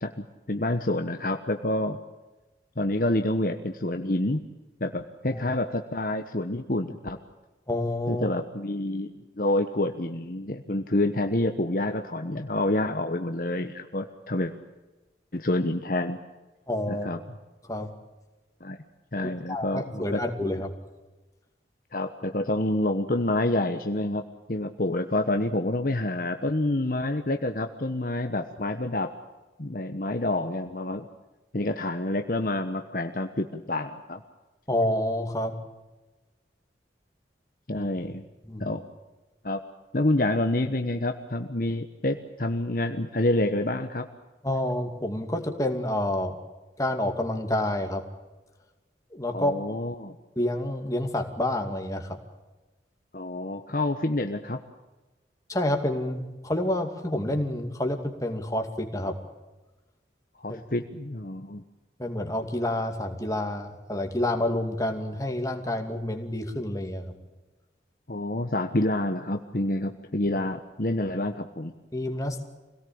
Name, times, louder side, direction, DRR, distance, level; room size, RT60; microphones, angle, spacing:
voice 1, 0.0-2.0 2.8-4.4 4.8-7.2 8.1-14.5 15.3-16.2 16.9-17.2 18.6-18.8 19.1-20.2 21.9-24.2 24.5-29.1 29.6-31.1 31.5-34.2 37.7-38.2 38.6-38.8 39.4-39.6 39.9-44.1 49.3-50.2 53.1-54.6 60.4-61.6 68.1-71.7, left 1 dB, 50° left, 6 dB, 1.2 m, -28 dB
voice 2, 7.7-8.3 16.7-17.1 17.6-17.9 19.5-20.7 34.7-35.6 37.7-37.9 38.4-38.6 44.4-46.4 46.8-48.0 49.1-49.5 50.4-52.2 55.5-59.2 60.5-60.6 62.0-67.1 71.9-72.5, left 1 dB, 20° left, 4 dB, 2.5 m, -28 dB
25.5 x 18.0 x 8.8 m, 1.1 s
head